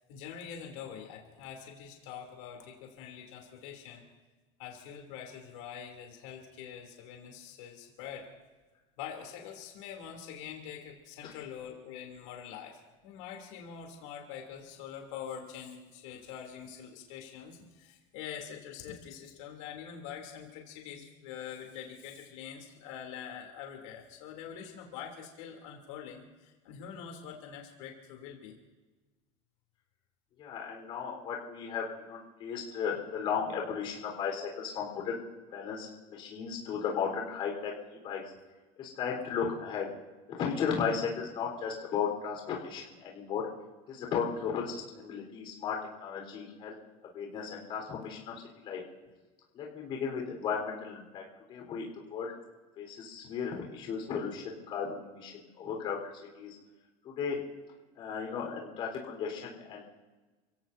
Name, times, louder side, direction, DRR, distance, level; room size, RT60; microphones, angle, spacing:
voice 1, 0.0-4.0 4.6-8.3 9.0-28.6, left 8 dB, 85° left, 2 dB, 3.1 m, -45 dB
voice 2, 30.4-35.2 35.5-37.7 38.0-38.2 38.8-39.9 40.4-43.5 43.9-46.7 47.1-48.8 49.5-51.2 51.5-52.3 52.8-56.0 56.4-56.6 57.0-57.4 58.0-59.8, left 6 dB, 35° left, -1 dB, 4.1 m, -35 dB
30.0 x 16.5 x 2.7 m, 1.2 s
cardioid pair, 180°, 15 cm